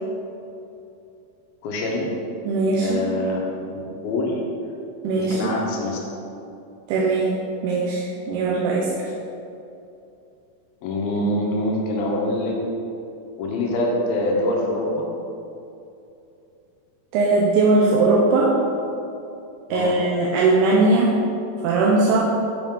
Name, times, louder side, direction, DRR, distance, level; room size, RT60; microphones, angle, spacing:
voice 1, 1.6-2.1 2.8-4.4 5.2-6.0 10.8-12.6 13.4-15.1 19.7-20.0, left 1 dB, 75° left, -1 dB, 2.5 m, -25 dB
voice 2, 2.5-3.1 5.0-5.6 6.9-8.9 17.1-18.6 19.7-21.2 21.6-22.3, right 3 dB, 90° right, -4 dB, 2.7 m, -19 dB
7.7 x 5.9 x 3.7 m, 2.7 s
omnidirectional pair, 4.6 m